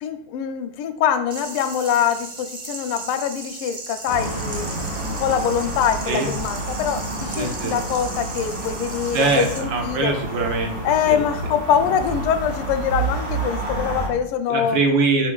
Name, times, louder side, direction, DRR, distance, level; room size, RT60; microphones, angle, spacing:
voice 1, 0.0-10.1 10.8-14.8, left 8 dB, 85° left, 9 dB, 1.5 m, -24 dB
sound 1, 1.3-9.6, right 3 dB, 90° right, 0.4 m, -36 dB
sound 2, 4.1-14.1, right 2 dB, 25° right, 2.3 m, -29 dB
voice 2, 7.3-7.8 9.1-10.8 11.1-11.2 14.5-15.3, right 3 dB, 65° right, 2 dB, 1.6 m, -22 dB
7.4 x 6.0 x 2.3 m, 0.64 s
omnidirectional pair, 2.4 m